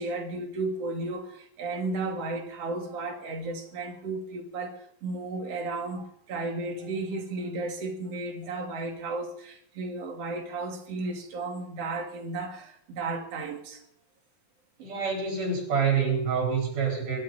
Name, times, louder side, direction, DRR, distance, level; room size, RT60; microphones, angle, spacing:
voice 1, 0.0-13.8, right 3 dB, 50° right, 3.4 m, -34 dB
voice 2, 14.8-17.2, right 6 dB, 90° right, 6.3 m, -27 dB
24.5 x 12.0 x 4.3 m
omnidirectional pair, 3.5 m